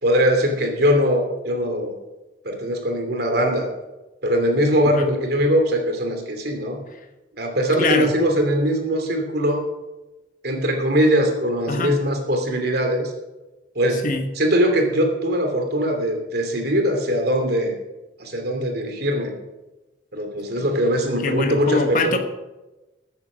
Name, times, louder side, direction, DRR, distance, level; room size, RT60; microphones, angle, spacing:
voice 1, 0.0-1.9 2.4-3.7 4.2-6.8 7.4-9.6 10.4-13.1 13.7-14.1 14.4-17.7 18.2-19.3 20.1-22.2, equal, 55° right, 4 dB, 2.8 m, -21 dB
voice 2, 7.8-8.1 11.7-12.0 14.0-14.2 20.6-20.7 21.2-22.2, left 3 dB, 45° left, 6 dB, 1.2 m, -23 dB
14.0 x 9.5 x 6.2 m, 1.1 s
head